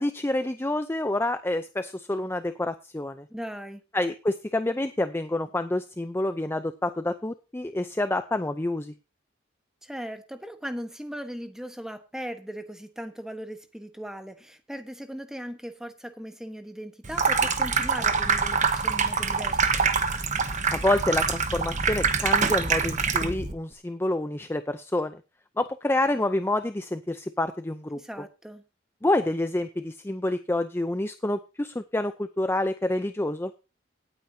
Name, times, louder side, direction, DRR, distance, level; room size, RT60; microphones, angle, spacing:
voice 1, 0.0-3.3 3.9-8.9 20.7-25.2 25.6-28.0 29.0-33.5, left 1 dB, 15° left, 10 dB, 0.5 m, -28 dB
voice 2, 3.3-3.8 9.8-19.8 27.9-28.6, equal, 5° right, 8 dB, 1.2 m, -38 dB
Water tap faucet / Sink (filling or washing), 17.0-23.5, right 5 dB, 40° right, 1.2 m, -25 dB
17.5 x 9.1 x 2.8 m, 0.29 s
head